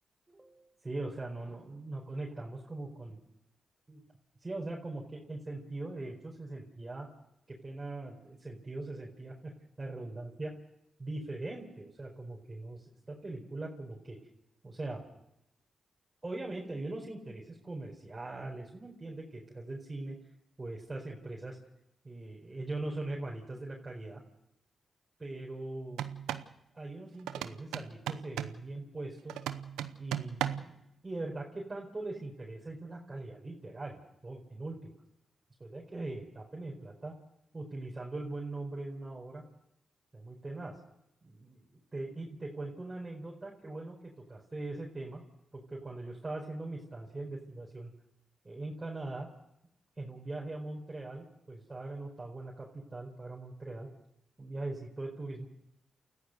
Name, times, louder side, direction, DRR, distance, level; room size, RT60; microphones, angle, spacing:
voice 1, 0.3-3.2 3.9-4.0 4.4-7.1 7.5-9.5 9.8-10.5 11.0-14.2 14.6-15.0 16.2-20.2 20.6-21.6 22.0-24.2 25.2-26.1 26.7-29.4 30.0-34.9 35.6-37.2 37.5-39.4 40.1-40.8 41.2-41.7 41.9-45.2 45.5-47.9 48.4-49.3 50.0-53.9 54.4-55.5, right 2 dB, 35° right, -2 dB, 4.6 m, -41 dB
sound 1, 25.9-26.5 27.3-28.6 29.3-30.8, right 11 dB, 90° right, 0.8 m, -37 dB
29.0 x 14.5 x 6.7 m, 0.84 s
supercardioid pair, 45°, 0 cm